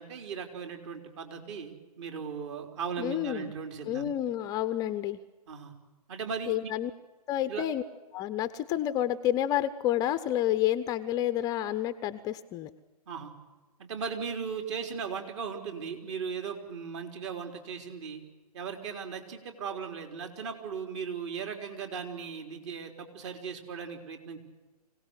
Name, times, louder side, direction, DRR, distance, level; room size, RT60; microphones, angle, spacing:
voice 1, 0.0-4.1 5.5-5.7 6.1-6.5 7.5-7.6 13.1-13.3 13.8-18.2 18.5-24.4, right 6 dB, 45° right, 4 dB, 4.1 m, -37 dB
voice 2, 3.0-3.5 3.9-5.2 6.5-6.9 7.3-7.8 8.1-12.7, left 12 dB, 20° left, 12 dB, 0.7 m, -29 dB
25.5 x 17.5 x 8.2 m, 1.2 s
hypercardioid pair, 135°, 20 cm